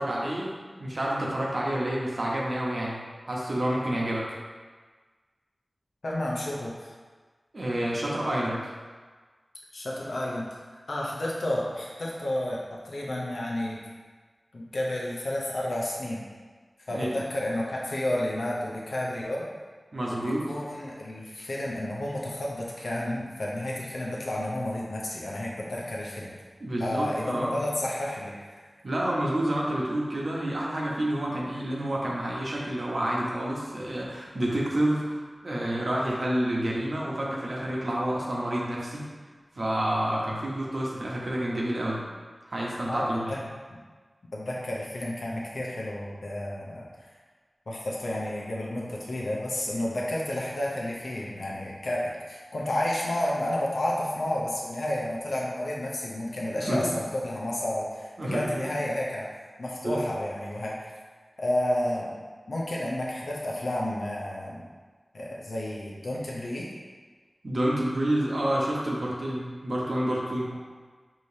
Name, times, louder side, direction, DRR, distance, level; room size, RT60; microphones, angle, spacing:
voice 1, 0.0-4.3 7.5-8.7 16.9-17.1 19.9-20.5 26.6-27.6 28.8-39.1 39.5-42.0 42.5-43.4 56.4-56.9 58.2-58.7 59.8-60.0 67.4-70.6, right 1 dB, 65° right, -4 dB, 0.9 m, -29 dB
voice 2, 6.0-6.9 9.7-10.5 10.9-13.8 14.5-16.2 16.9-19.4 20.1-26.3 26.8-28.6 42.9-43.4 43.7-43.8 44.3-46.9 47.7-59.3 59.6-60.9 61.4-62.1 62.5-64.6 65.1-66.7, left 1 dB, 90° left, -4 dB, 0.7 m, -31 dB
4.8 x 2.9 x 2.7 m, 1.4 s
wide cardioid pair, 50°, 0 cm